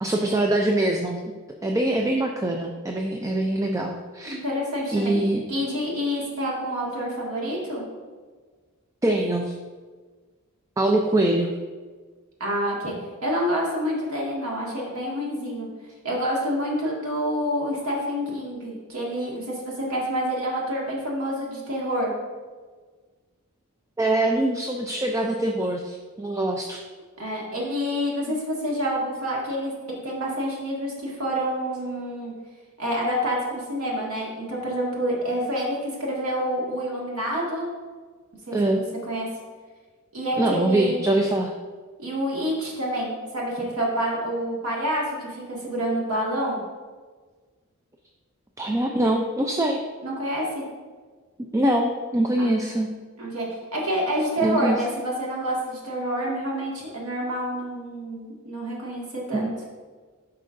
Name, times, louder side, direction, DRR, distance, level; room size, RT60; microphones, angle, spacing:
voice 1, 0.0-1.2 1.6-4.4 4.9-5.4 9.0-9.5 10.8-11.5 24.0-26.8 38.5-38.8 40.4-41.5 48.6-49.8 51.5-52.9 54.4-54.8 59.3-59.5, right 1 dB, 15° right, 2 dB, 0.4 m, -23 dB
voice 2, 4.3-7.8 12.4-12.9 13.2-15.7 16.0-22.1 27.2-32.3 32.8-37.7 38.5-39.3 40.1-41.0 42.0-46.6 50.0-50.6 52.4-52.5 53.2-59.5, equal, 75° right, -3 dB, 1.9 m, -28 dB
10.0 x 5.5 x 2.6 m, 1.4 s
head